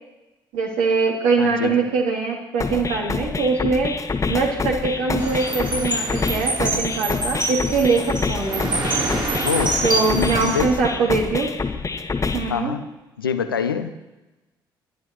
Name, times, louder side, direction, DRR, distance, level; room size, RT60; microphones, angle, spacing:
voice 1, 0.5-8.7 9.8-11.5 12.3-12.7, right 4 dB, 65° right, -1 dB, 2.8 m, -22 dB
voice 2, 1.4-1.7 9.4-9.8 10.1-10.7 12.5-12.8 13.2-13.9, left 7 dB, 85° left, 10 dB, 0.6 m, -25 dB
sound 1, 2.6-12.6, left 4 dB, 25° left, 1.4 m, -27 dB
sound 2, 5.2-10.6, right 2 dB, 40° right, 3.9 m, -26 dB
21.0 x 11.0 x 3.1 m, 1.1 s
figure-of-eight pair, 45°, 12 cm